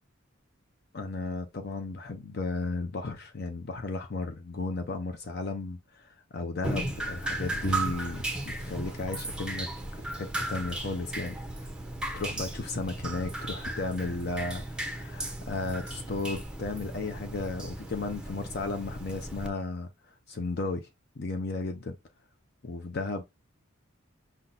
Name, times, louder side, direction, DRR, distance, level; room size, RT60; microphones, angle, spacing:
voice 1, 0.9-9.7 9.9-11.4 12.1-20.9 21.2-22.0 22.6-23.2, left 3 dB, 50° left, 0.5 m, -34 dB
Drip, 6.6-19.5, right 2 dB, 5° right, 0.6 m, -36 dB
5.7 x 2.2 x 3.9 m
head